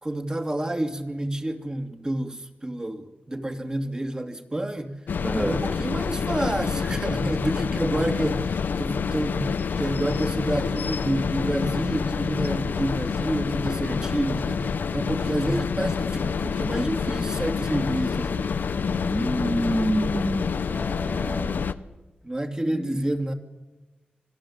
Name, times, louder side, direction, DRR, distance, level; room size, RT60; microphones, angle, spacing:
voice 1, 0.0-5.0 5.4-18.5 22.2-23.3, right 1 dB, 25° right, 5 dB, 2.7 m, -29 dB
sound 1, 5.1-21.7, left 6 dB, 85° left, 0.9 m, -27 dB
voice 2, 5.2-5.6 15.0-15.4 18.9-21.6 22.6-23.0, equal, 10° right, 3 dB, 2.0 m, -28 dB
26.5 x 17.0 x 8.8 m, 1.1 s
cardioid pair, 70°, 3 cm